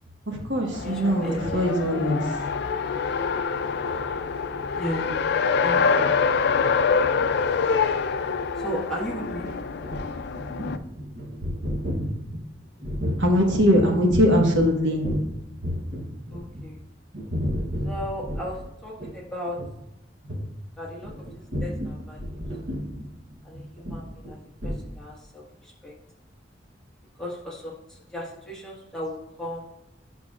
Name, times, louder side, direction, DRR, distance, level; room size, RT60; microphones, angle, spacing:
voice 1, 0.3-2.4 13.2-15.0, equal, 75° right, 1 dB, 1.3 m, -21 dB
Race car auto racing, 0.7-10.8, left 5 dB, 65° left, 0.4 m, -25 dB
voice 2, 0.8-1.7 4.7-5.2 5.6-6.1 8.6-9.5 16.3-16.8 17.8-19.6 20.8-21.1 21.6-22.2 23.4-24.4 24.6-25.9 27.2-29.7, equal, 5° left, -5 dB, 1.5 m, -35 dB
sound 1, 9.4-15.3 15.6-16.8 17.1-18.7 19.0-19.1 19.5-19.7 20.2-20.5 21.0-24.3 24.6-24.8, equal, 60° right, 1.0 m, -31 dB
9.0 x 6.0 x 2.4 m, 0.86 s
head